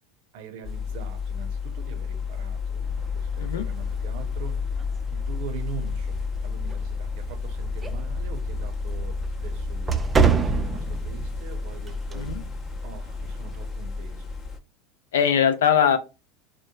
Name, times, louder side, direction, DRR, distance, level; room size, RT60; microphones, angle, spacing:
voice 1, 0.3-4.8 5.1-12.3 12.8-14.4, right 8 dB, 70° right, 0.6 m, -43 dB
sound 1, 0.6-14.6, left 5 dB, 35° left, 0.6 m, -31 dB
sound 2, 2.8-13.7, right 6 dB, 20° right, 0.3 m, -30 dB
voice 2, 15.1-16.0, left 8 dB, 90° left, 0.4 m, -21 dB
3.0 x 2.1 x 2.2 m
supercardioid pair, 110°, 0 cm